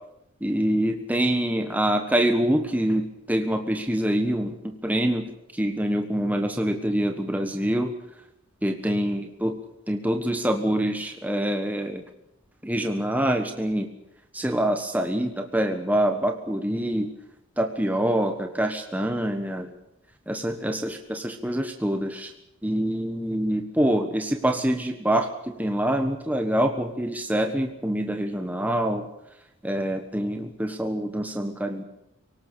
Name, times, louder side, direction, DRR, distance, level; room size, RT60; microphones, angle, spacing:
voice 1, 0.4-7.9 8.6-9.6 9.9-12.0 12.6-13.9 14.3-17.1 17.6-19.7 20.3-22.3 22.6-29.1 29.6-31.8, right 1 dB, 5° right, 4 dB, 1.4 m, -25 dB
25.5 x 18.0 x 6.8 m, 0.82 s
head